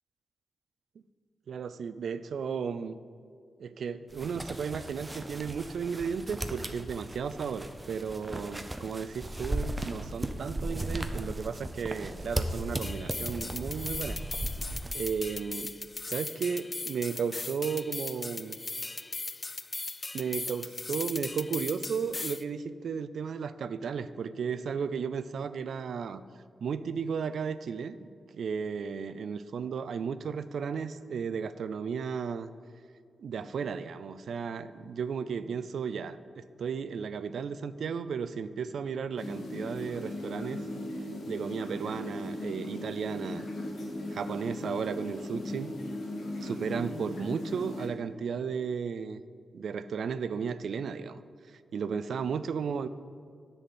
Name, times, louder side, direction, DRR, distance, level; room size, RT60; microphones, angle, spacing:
voice 1, 1.5-3.0 3.6-14.2 14.9-15.7 16.0-18.6 20.1-26.2 26.6-28.1 28.3-32.5 33.2-40.7 41.3-43.4 44.1-45.7 46.4-49.2 49.5-51.2 51.7-52.9, right 6 dB, 75° right, 14 dB, 0.3 m, -34 dB
sound 1, 4.1-14.9, right 1 dB, 15° right, 0.6 m, -37 dB
sound 2, 12.8-22.4, left 3 dB, 30° left, 0.3 m, -38 dB
sound 3, 39.2-47.9, left 1 dB, 80° left, 1.5 m, -38 dB
10.0 x 4.1 x 7.3 m, 2.2 s
cardioid pair, 90°, 0 cm